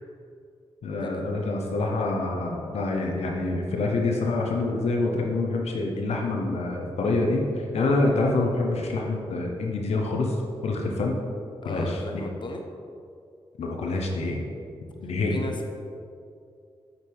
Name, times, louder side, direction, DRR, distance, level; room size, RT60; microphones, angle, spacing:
voice 1, 0.8-10.4 10.6-11.2 11.6-12.3 13.6-14.5 15.0-15.4, left 2 dB, 85° left, 1 dB, 0.8 m, -26 dB
voice 2, 11.6-12.6 15.3-15.7, left 2 dB, 50° left, 3 dB, 0.9 m, -35 dB
8.1 x 6.0 x 3.5 m, 2.4 s
cardioid pair, 50°, 11 cm